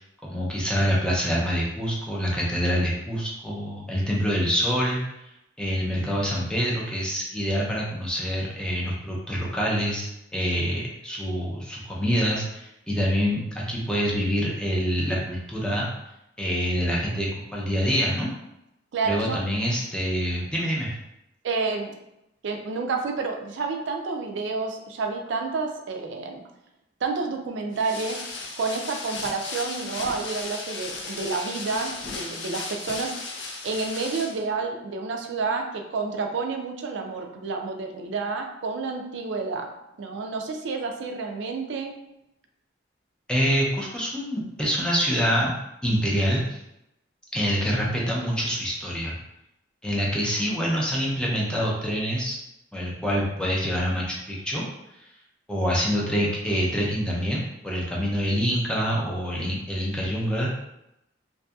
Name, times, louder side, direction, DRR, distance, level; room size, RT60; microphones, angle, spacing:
voice 1, 0.0-5.0 5.6-15.9 16.4-18.3 19.1-20.9 43.3-45.5 45.8-46.6 47.3-49.2 49.8-52.4 52.7-54.6 55.5-60.5, equal, 5° left, -4 dB, 0.5 m, -26 dB
voice 2, 18.9-19.4 21.4-22.0 22.4-26.4 27.0-28.2 28.6-33.1 33.6-39.7 40.0-41.9, right 4 dB, 65° right, 3 dB, 0.4 m, -29 dB
sound 1, 27.7-34.4, left 3 dB, 65° left, 0.4 m, -35 dB
2.6 x 2.6 x 2.3 m, 0.86 s
head